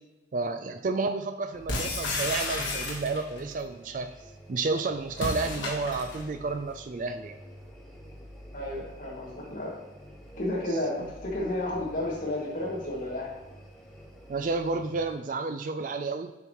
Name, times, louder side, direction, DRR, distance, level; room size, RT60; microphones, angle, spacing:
voice 1, 0.3-4.1 4.5-7.4 14.3-16.3, right 3 dB, 45° right, 8 dB, 0.4 m, -31 dB
sound 1, 1.5-15.1, equal, ahead, 1.0 m, -48 dB
sound 2, 1.7-3.4 5.1-6.3, left 2 dB, 80° left, 1.4 m, -32 dB
voice 2, 8.5-9.7 10.4-13.4, left 1 dB, 45° left, -4 dB, 2.1 m, -32 dB
7.9 x 5.4 x 3.0 m, 1.1 s
head